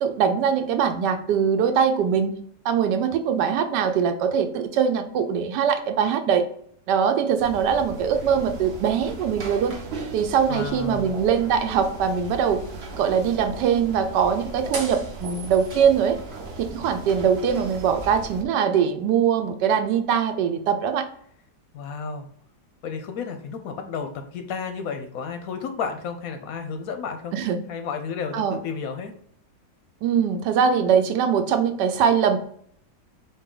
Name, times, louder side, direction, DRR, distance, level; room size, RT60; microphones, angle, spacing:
voice 1, 0.0-2.4 2.6-6.5 6.9-9.8 10.1-12.6 13.0-16.2 16.6-21.1 27.3-27.6 28.3-28.6 30.0-32.4, right 7 dB, 80° right, 7 dB, 1.2 m, -22 dB
sound 1, 7.4-18.4, right 3 dB, 50° right, 0.8 m, -37 dB
voice 2, 10.5-11.1 21.7-22.3 22.8-27.3 27.7-29.1, left 6 dB, 70° left, 6 dB, 0.9 m, -32 dB
4.5 x 2.7 x 3.7 m, 0.63 s
omnidirectional pair, 1.8 m